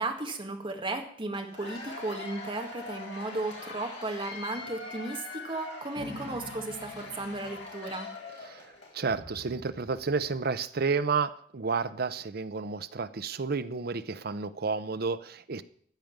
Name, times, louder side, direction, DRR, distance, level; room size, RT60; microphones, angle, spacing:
voice 1, 0.0-8.1, right 2 dB, 30° right, 4 dB, 1.8 m, -35 dB
Cheering / Applause / Crowd, 1.3-9.0, left 3 dB, 70° left, 4.4 m, -43 dB
sound 1, 6.0-7.6 9.1-10.3, left 1 dB, 10° right, 2.9 m, -46 dB
voice 2, 8.9-15.6, right 4 dB, 55° right, 14 dB, 0.7 m, -31 dB
15.0 x 5.2 x 9.3 m, 0.62 s
head